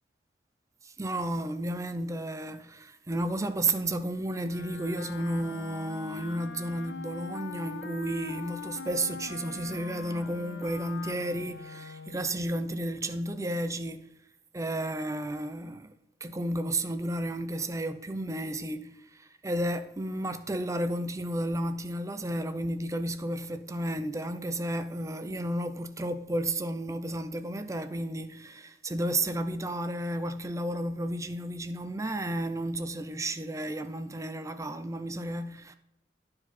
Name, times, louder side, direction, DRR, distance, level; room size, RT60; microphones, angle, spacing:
voice 1, 0.8-14.1 14.5-15.9 16.2-35.8, right 1 dB, 20° right, 0.5 m, -32 dB
Wind instrument woodwind instrument, 4.4-12.3, left 4 dB, 75° left, 0.6 m, -42 dB
10.0 x 4.8 x 4.3 m
head